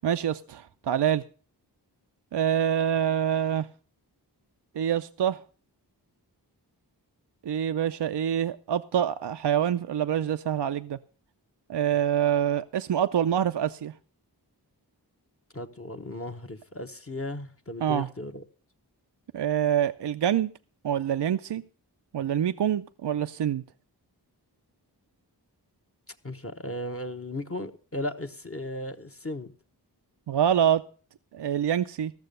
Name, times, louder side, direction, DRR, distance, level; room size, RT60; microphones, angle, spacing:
voice 1, 0.0-1.2 2.3-3.7 4.7-5.4 7.4-11.0 11.7-13.9 17.8-18.1 19.3-20.5 20.8-21.6 22.1-23.6 30.3-30.8 31.3-32.1, right 9 dB, 75° right, 0.5 m, -26 dB
voice 2, 15.5-18.4 26.2-29.5, left 1 dB, 35° left, 1.0 m, -36 dB
14.5 x 6.7 x 6.6 m
wide cardioid pair, 50°, 42 cm